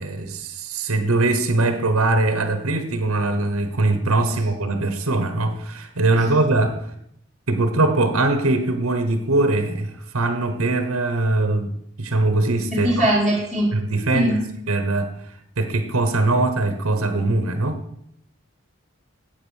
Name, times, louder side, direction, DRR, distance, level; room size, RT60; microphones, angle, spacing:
voice 1, 0.0-6.9 7.5-13.1 13.7-14.4 14.7-17.8, right 2 dB, 90° right, 9 dB, 1.2 m, -21 dB
voice 2, 12.7-13.7 14.1-14.4, equal, ahead, -8 dB, 1.8 m, -20 dB
8.8 x 8.4 x 6.4 m, 0.75 s
head